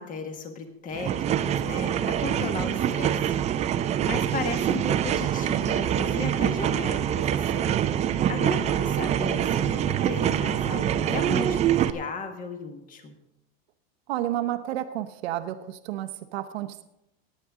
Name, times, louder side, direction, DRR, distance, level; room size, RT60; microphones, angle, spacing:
voice 1, 0.0-3.3 4.0-13.2, left 4 dB, 25° left, 6 dB, 1.5 m, -36 dB
sound 1, 0.9-11.9, right 10 dB, 25° right, 0.4 m, -25 dB
voice 2, 14.1-16.8, right 13 dB, 90° right, 9 dB, 0.8 m, -31 dB
17.5 x 9.2 x 3.7 m, 0.88 s
supercardioid pair, 145°, 30 cm